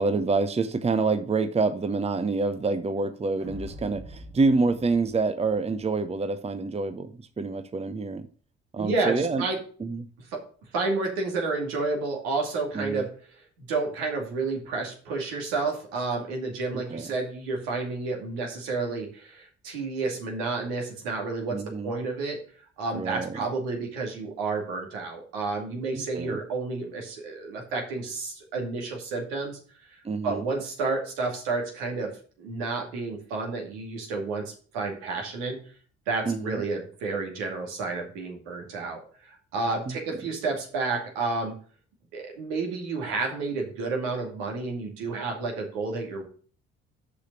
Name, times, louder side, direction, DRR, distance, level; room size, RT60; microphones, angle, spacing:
voice 1, 0.0-8.3 8.7-9.4 9.8-10.1 12.7-13.0 16.7-17.1 21.5-21.9 22.9-23.4 25.9-26.4 30.0-30.5 36.3-36.6 39.9-40.2, right 3 dB, 20° right, 0.8 m, -27 dB
sound 1, 3.4-5.9, equal, 50° right, 3.0 m, -44 dB
voice 2, 8.8-9.6 10.3-10.4 10.7-22.4 22.8-29.6 29.9-32.1 32.4-35.6 36.1-41.5 42.1-46.3, right 3 dB, 75° right, 2.4 m, -30 dB
6.6 x 5.8 x 6.7 m
hypercardioid pair, 45°, 31 cm